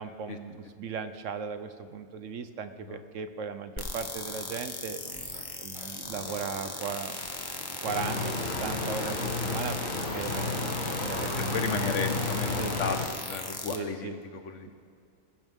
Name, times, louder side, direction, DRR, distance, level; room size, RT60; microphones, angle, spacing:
voice 1, 0.0-7.3 7.8-9.8 10.1-11.9 12.6-12.7 13.7-14.2 14.6-14.7, right 6 dB, 70° right, 10 dB, 1.2 m, -37 dB
sound 1, 3.8-13.8, left 2 dB, 20° left, 1.1 m, -38 dB
Scratching (performance technique), 5.0-5.4 5.7-8.3 8.6-12.8, right 1 dB, 35° right, 3.7 m, -47 dB
sound 2, 7.8-13.1, left 3 dB, 85° left, 2.8 m, -32 dB
voice 2, 11.5-13.0 13.3-14.7, left 5 dB, 70° left, 7 dB, 1.4 m, -34 dB
20.5 x 15.5 x 3.7 m, 2.4 s
omnidirectional pair, 1.4 m